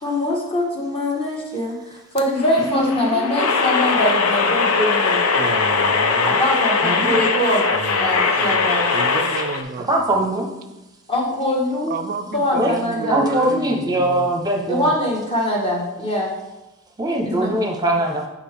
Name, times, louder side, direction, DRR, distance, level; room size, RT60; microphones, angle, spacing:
voice 1, 0.0-5.2 6.2-7.7 8.0-8.9 11.1-11.9 12.3-13.2 14.7-16.3 17.2-17.6, left 1 dB, 25° left, -2 dB, 1.4 m, -23 dB
sound 1, 2.2-9.6, left 4 dB, 85° left, 0.7 m, -20 dB
voice 2, 2.6-3.8 6.8-7.2 9.9-10.5 12.6-12.7 13.1-14.9 17.0-18.3, right 1 dB, 20° right, 1 dB, 0.8 m, -22 dB
voice 3, 5.3-6.4 7.7-9.9 11.8-14.4, right 4 dB, 45° right, 6 dB, 0.3 m, -31 dB
8.2 x 4.9 x 3.4 m, 1.0 s
head